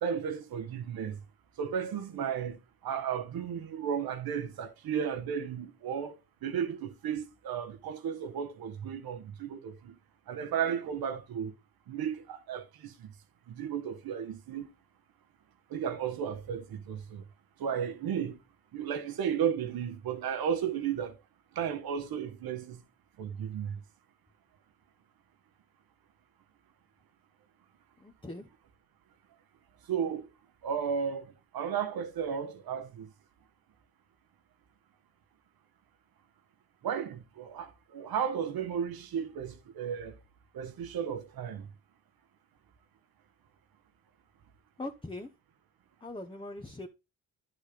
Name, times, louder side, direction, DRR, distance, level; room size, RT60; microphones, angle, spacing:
voice 1, 0.0-1.2 1.6-6.2 6.4-10.0 10.3-11.5 11.9-13.1 13.5-14.7 15.7-17.2 17.6-18.4 18.7-21.2 21.5-22.8 23.2-23.8 29.9-30.3 30.6-33.1 36.8-40.1 40.5-41.7, right 8 dB, 80° right, 1.3 m, -34 dB
voice 2, 28.0-28.5 44.8-45.3 46.0-46.9, left 2 dB, 15° left, 1.1 m, -41 dB
10.0 x 4.1 x 5.0 m
supercardioid pair, 60°, 36 cm